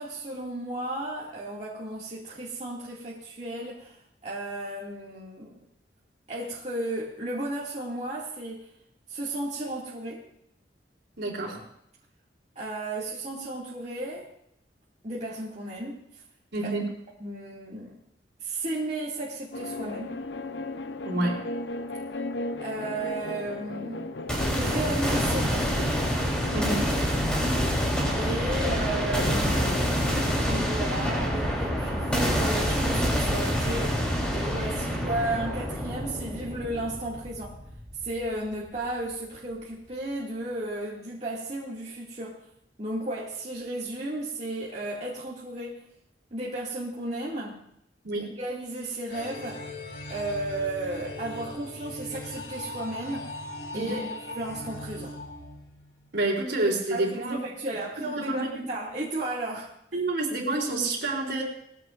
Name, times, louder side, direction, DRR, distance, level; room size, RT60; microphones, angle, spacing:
voice 1, 0.0-4.0 4.2-5.6 6.3-8.7 9.1-10.3 12.6-14.3 15.0-16.2 16.6-16.7 17.2-18.0 18.4-20.2 22.6-24.2 24.5-25.7 28.1-37.6 38.0-42.5 42.8-45.9 46.3-47.7 48.1-49.7 50.1-53.4 53.7-55.1 56.9-59.7, right 1 dB, 40° right, -6 dB, 2.3 m, -34 dB
voice 2, 11.2-11.6 16.5-16.8 21.0-21.4 26.5-26.9 48.0-48.3 53.7-54.1 56.1-57.4 58.0-58.7 59.9-61.4, right 2 dB, 75° right, -1 dB, 3.6 m, -28 dB
sound 1, 19.5-30.6, left 2 dB, 85° left, 0.7 m, -37 dB
sound 2, 24.3-38.2, equal, 5° left, 3.6 m, -27 dB
sound 3, 49.1-56.1, left 1 dB, 70° left, 2.8 m, -39 dB
20.0 x 15.5 x 2.6 m, 0.76 s
head